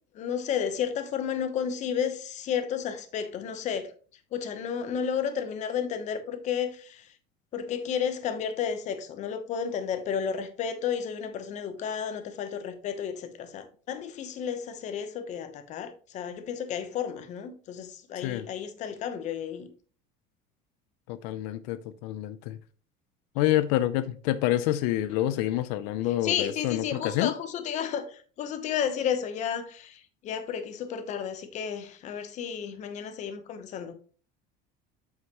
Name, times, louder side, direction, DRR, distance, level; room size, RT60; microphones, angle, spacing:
voice 1, 0.1-3.9 4.3-7.1 7.5-19.7 26.2-33.9, left 8 dB, 35° left, 0.9 m, -32 dB
voice 2, 21.1-22.6 23.4-27.3, left 14 dB, 85° left, 0.5 m, -27 dB
7.8 x 5.7 x 3.0 m
cardioid pair, 170°, 21 cm